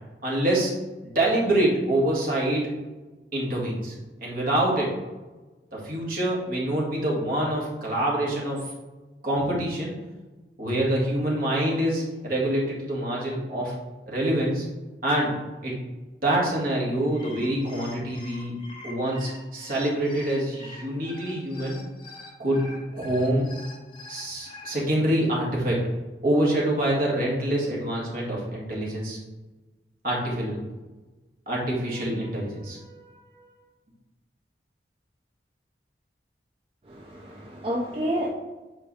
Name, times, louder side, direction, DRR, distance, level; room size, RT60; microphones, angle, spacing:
voice 1, 0.2-0.7 1.0-2.7 3.3-3.9 4.2-4.9 5.7-8.6 9.2-9.9 10.6-13.7 14.1-14.7 15.0-15.3 15.6-15.8 16.2-18.5 18.8-21.8 22.4-22.6 22.9-23.5 24.1-25.8 26.2-29.2 30.0-30.6 31.5-32.9, right 1 dB, 55° right, -4 dB, 1.9 m, -25 dB
sound 1, 17.0-24.7, left 2 dB, 30° left, 1.3 m, -45 dB
voice 2, 36.8-38.3, equal, 30° right, -4 dB, 0.7 m, -29 dB
7.8 x 4.5 x 3.2 m, 1.2 s
head